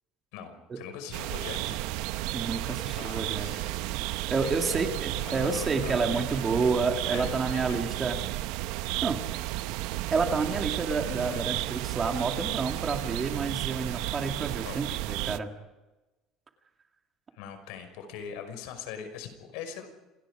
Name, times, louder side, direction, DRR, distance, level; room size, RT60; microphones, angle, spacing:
voice 1, 0.3-1.8 2.6-3.7 4.4-4.9 5.2-6.6 7.1-7.8 11.2-11.6 14.6-14.8 17.3-19.9, left 7 dB, 85° left, 8 dB, 5.5 m, -42 dB
sound 1, 1.1-15.4, right 16 dB, 75° right, 0.8 m, -33 dB
voice 2, 2.3-3.5 4.3-8.2 9.0-9.2 10.1-15.5, right 4 dB, 20° right, 4 dB, 2.4 m, -29 dB
28.0 x 19.5 x 5.0 m, 1.1 s
cardioid pair, 155°, 0 cm